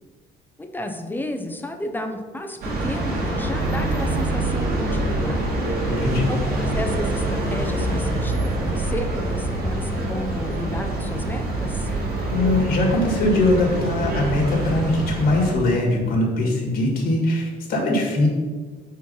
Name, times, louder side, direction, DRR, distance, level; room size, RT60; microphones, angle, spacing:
voice 1, 0.6-5.5 6.3-11.9, left 1 dB, 10° left, 5 dB, 0.6 m, -32 dB
sound 1, 2.6-15.5, right 2 dB, 65° right, 1.9 m, -25 dB
voice 2, 5.9-6.3 12.3-18.3, left 2 dB, 65° left, -2 dB, 1.9 m, -21 dB
4.7 x 4.5 x 5.5 m, 1.4 s
cardioid pair, 110°, 17 cm